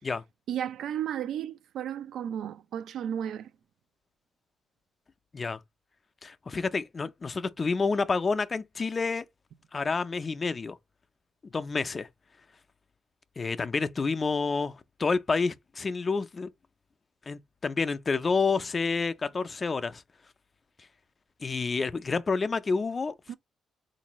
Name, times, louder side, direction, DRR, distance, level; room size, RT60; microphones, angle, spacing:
voice 1, 0.5-3.5 23.3-23.4, right 9 dB, 75° right, 0.3 m, -33 dB
voice 2, 6.2-9.2 9.7-10.8 11.4-12.1 13.4-16.5 17.3-20.0 21.4-23.3, left 4 dB, 35° left, 0.4 m, -29 dB
3.8 x 2.5 x 2.9 m
cardioid pair, 90°, 0 cm